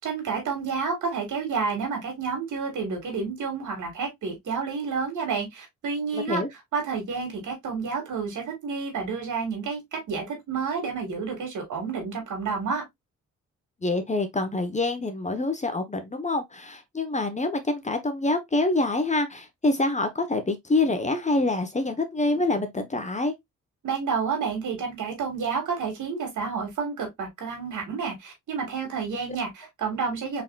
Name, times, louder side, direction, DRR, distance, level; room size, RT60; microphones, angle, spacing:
voice 1, 0.0-6.4 6.7-12.8 23.8-30.4, right 5 dB, 80° right, 2.2 m, -30 dB
voice 2, 6.1-6.5 13.8-23.3, left 2 dB, 25° left, 1.1 m, -26 dB
4.0 x 4.0 x 2.4 m
cardioid pair, 70°, 30 cm